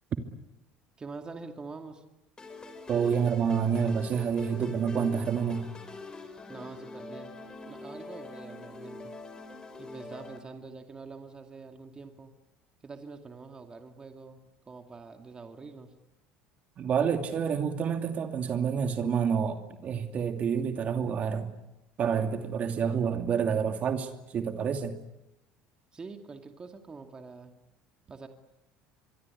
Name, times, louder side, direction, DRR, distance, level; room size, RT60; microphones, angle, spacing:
voice 1, 1.0-2.0 6.5-7.3 7.6-9.1 9.8-12.3 12.8-15.9 25.9-27.5 28.1-28.3, right 4 dB, 25° right, 5 dB, 2.4 m, -45 dB
sound 1, 2.4-10.4, left 3 dB, 20° left, 5.1 m, -44 dB
voice 2, 2.9-5.7 16.8-21.5 22.0-25.0, right 7 dB, 45° right, 6 dB, 2.7 m, -28 dB
24.5 x 23.5 x 9.9 m, 0.92 s
supercardioid pair, 110°, 4 cm